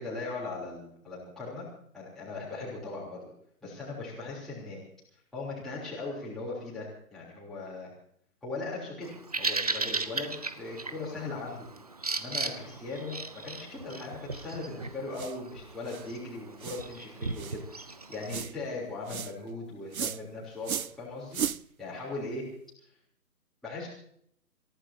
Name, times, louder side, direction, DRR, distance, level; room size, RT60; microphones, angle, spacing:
voice 1, 0.0-1.7 1.9-3.3 3.6-4.8 5.3-7.9 8.4-11.7 12.2-20.7 21.0-21.4 21.8-22.4 22.8-22.9 23.6-23.9, left 3 dB, ahead, -9 dB, 3.4 m, -39 dB
Bird vocalization bird call bird song, 9.0-18.4, right 3 dB, 25° right, 0.6 m, -37 dB
sound 1, 15.1-15.4 15.9-16.1 16.6-16.9 17.4-17.6 18.3-18.5 19.1-19.3 19.9-20.2 20.6-21.0 21.3-21.6, right 8 dB, 65° right, 0.6 m, -35 dB
27.0 x 15.0 x 2.8 m, 0.66 s
figure-of-eight pair, 140°, 46 cm